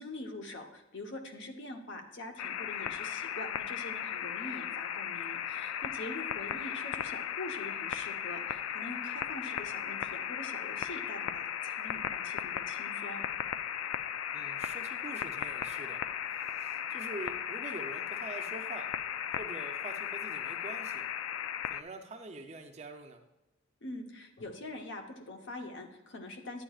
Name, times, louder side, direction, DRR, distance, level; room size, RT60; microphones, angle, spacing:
voice 1, 0.0-13.2 23.8-26.6, left 2 dB, 55° left, 4 dB, 0.9 m, -44 dB
sound 1, 2.4-21.8, left 9 dB, 75° left, 0.3 m, -36 dB
voice 2, 14.3-16.0 16.5-18.9 19.3-21.1 21.7-23.2, right 2 dB, 30° right, 5 dB, 0.6 m, -45 dB
10.0 x 9.1 x 2.4 m, 0.97 s
head